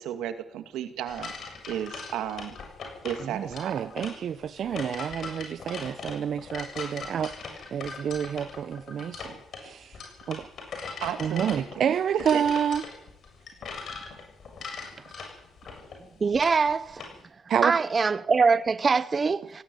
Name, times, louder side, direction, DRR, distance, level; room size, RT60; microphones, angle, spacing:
voice 1, 0.0-2.6 3.0-3.9 11.0-11.7 12.1-12.4, right 10 dB, 90° right, 2.3 m, -33 dB
sound 1, 1.1-17.2, left 4 dB, 60° left, 7.3 m, -40 dB
voice 2, 3.2-9.4 9.6-10.0 10.3-10.5 11.2-12.8 17.5-17.8, right 8 dB, 60° right, 1.0 m, -29 dB
voice 3, 16.2-17.0 17.6-19.6, right 4 dB, 35° right, 0.8 m, -23 dB
19.0 x 16.5 x 9.4 m
cardioid pair, 90°, 0 cm